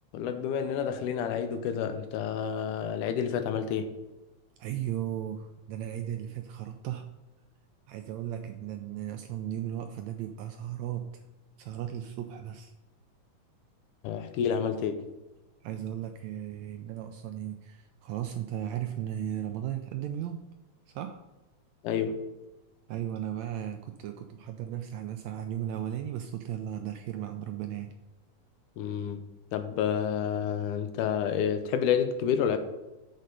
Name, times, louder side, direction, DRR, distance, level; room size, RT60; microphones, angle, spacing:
voice 1, 0.1-3.9 14.0-15.1 21.8-22.2 28.8-29.2 29.5-32.6, left 8 dB, 90° left, 9 dB, 2.2 m, -29 dB
voice 2, 4.6-7.1 7.9-11.2 11.6-12.7 15.6-20.4 20.9-21.2 22.9-27.9, right 11 dB, 80° right, 6 dB, 1.6 m, -36 dB
6.5 x 6.5 x 5.3 m, 1.0 s
omnidirectional pair, 3.6 m